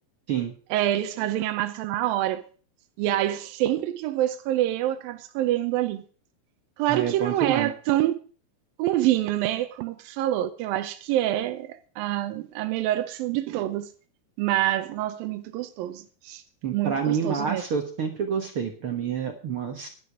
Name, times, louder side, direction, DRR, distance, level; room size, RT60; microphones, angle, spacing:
voice 1, 0.7-2.4 3.0-6.0 6.8-8.2 8.8-13.9 14.4-16.4 16.7-17.6, right 14 dB, 80° right, 2.4 m, -26 dB
voice 2, 6.9-7.7 16.6-19.9, right 7 dB, 60° right, 1.4 m, -28 dB
12.0 x 11.0 x 4.8 m
omnidirectional pair, 4.4 m